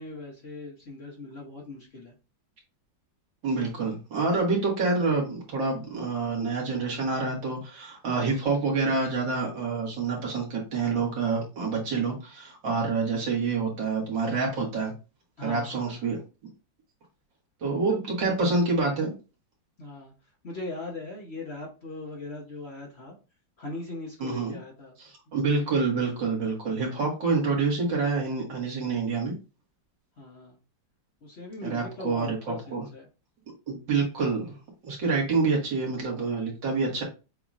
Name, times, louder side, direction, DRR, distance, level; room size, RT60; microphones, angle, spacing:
voice 1, 0.0-2.1 15.4-16.0 17.9-18.0 19.8-20.1 20.4-23.2 23.6-25.0 30.2-30.6 31.2-33.0, left 2 dB, 40° left, -2 dB, 1.1 m, -40 dB
voice 2, 3.4-14.9 15.4-16.2 17.6-19.2 24.2-24.6 25.0-29.3 31.6-32.9 33.7-34.6 34.8-37.0, right 4 dB, 75° right, -2 dB, 2.4 m, -27 dB
6.9 x 2.9 x 2.5 m, 0.30 s
omnidirectional pair, 2.0 m